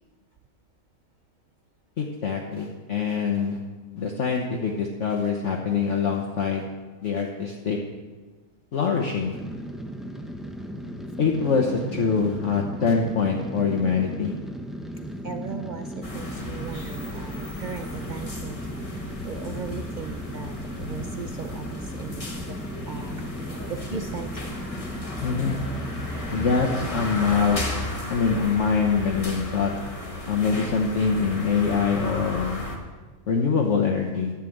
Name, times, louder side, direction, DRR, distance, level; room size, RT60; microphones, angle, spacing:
voice 1, 2.0-3.6 4.0-6.7 7.0-7.8 8.7-9.4 11.2-14.3 25.2-25.6 26.3-27.6 28.1-29.7 30.3-32.6 33.3-34.3, left 5 dB, 55° left, 0 dB, 1.3 m, -24 dB
sound 1, 9.3-27.1, equal, ahead, 0.3 m, -36 dB
voice 2, 15.2-24.5, right 5 dB, 75° right, 6 dB, 0.4 m, -38 dB
sound 2, 16.0-32.8, left 2 dB, 25° left, 1.3 m, -35 dB
11.0 x 7.4 x 7.8 m, 1.3 s
omnidirectional pair, 1.6 m